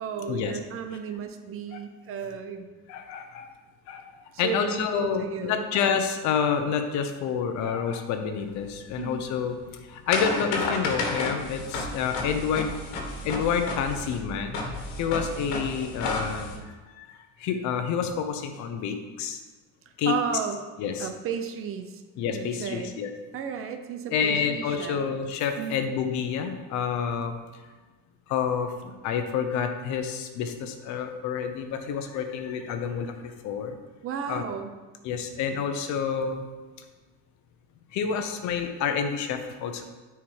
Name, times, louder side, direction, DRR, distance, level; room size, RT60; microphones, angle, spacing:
voice 1, 0.0-2.7 4.3-5.7 9.0-9.2 20.0-20.7 21.0-22.0 22.3-22.9 23.3-25.1 25.6-25.8 34.0-34.8, right 7 dB, 40° right, 7 dB, 0.7 m, -33 dB
voice 2, 2.9-3.5 3.9-4.0 4.4-9.6 9.9-12.7 13.2-14.6 15.0-17.1 17.4-19.4 20.0-20.1 20.8-21.1 22.2-23.1 24.1-27.4 28.3-33.8 34.3-34.4 35.0-36.5 37.9-39.8, left 7 dB, 55° left, 6 dB, 1.0 m, -28 dB
sound 1, 8.5-16.6, left 2 dB, 80° left, 1.7 m, -32 dB
9.0 x 4.7 x 5.0 m, 1.3 s
cardioid pair, 155°, 34 cm